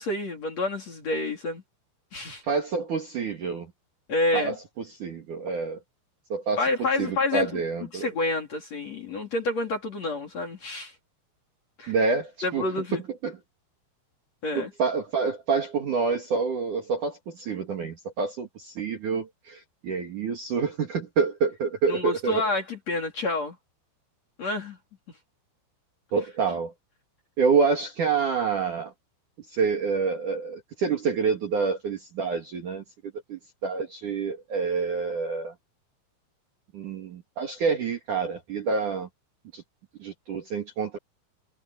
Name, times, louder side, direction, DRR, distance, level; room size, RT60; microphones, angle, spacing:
voice 1, 0.0-1.6 2.1-2.4 4.1-4.6 6.6-7.6 7.9-10.9 11.8-11.9 12.4-13.0 14.4-14.7 21.9-23.6 24.4-24.8, left 2 dB, 35° left, 3.6 m, -28 dB
voice 2, 2.4-3.7 4.3-4.5 4.9-5.8 6.3-6.6 7.0-8.1 11.9-13.4 14.5-22.4 26.1-26.7 27.4-28.9 29.5-32.8 33.3-35.5 36.7-39.1 39.5-39.6 40.0-41.0, right 5 dB, 50° right, 2.7 m, -27 dB
omnidirectional pair, 6.0 m